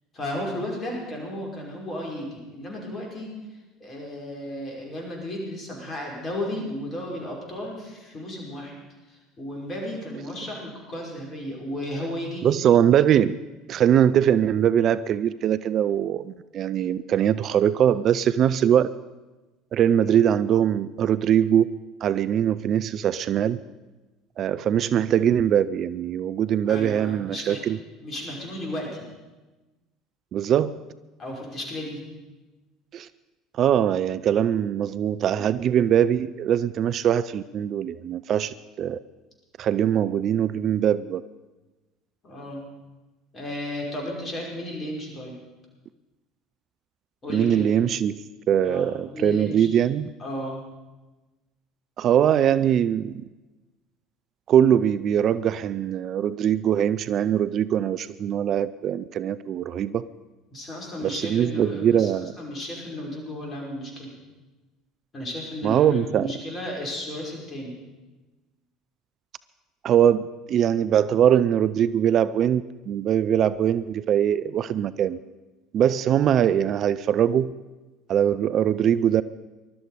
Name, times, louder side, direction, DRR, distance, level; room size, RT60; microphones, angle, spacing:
voice 1, 0.1-3.3 3.8-8.7 9.1-12.5 26.7-27.6 28.0-29.1 31.2-32.0 42.2-42.6 43.3-45.4 47.2-47.7 48.6-49.7 50.2-50.6 60.5-62.1 62.4-64.1 65.1-67.8, left 1 dB, 30° left, -1 dB, 5.5 m, -34 dB
voice 2, 12.4-13.4 13.7-18.9 19.7-23.6 24.4-27.8 30.3-30.8 32.9-33.1 33.5-39.0 39.6-41.2 47.3-48.2 48.5-50.1 52.0-53.2 54.5-60.0 61.0-62.3 65.6-66.3 69.8-75.2 75.7-77.5 78.1-79.2, right 9 dB, 45° right, 15 dB, 0.4 m, -22 dB
20.5 x 12.5 x 5.1 m, 1.1 s
figure-of-eight pair, 65°, 0 cm